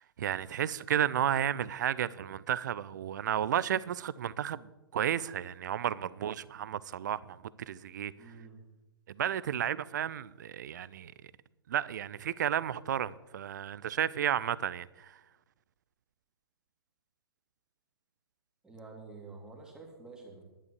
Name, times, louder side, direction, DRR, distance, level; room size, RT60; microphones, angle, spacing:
voice 1, 0.0-8.1 9.1-11.1 11.7-15.1, right 10 dB, 45° right, 0.5 m, -32 dB
voice 2, 8.2-8.6 18.6-20.4, right 3 dB, 5° right, 2.5 m, -49 dB
11.0 x 10.5 x 6.7 m
figure-of-eight pair, 120°, 13 cm